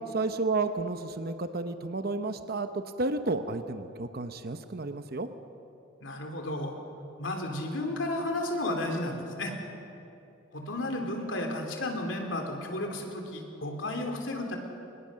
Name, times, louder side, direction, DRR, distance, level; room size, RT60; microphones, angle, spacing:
voice 1, 0.1-5.3, right 3 dB, 50° right, 9 dB, 0.9 m, -31 dB
voice 2, 6.0-6.8 7.2-9.5 10.5-14.6, left 1 dB, 70° left, 3 dB, 3.2 m, -33 dB
24.0 x 21.0 x 6.4 m, 2.8 s
head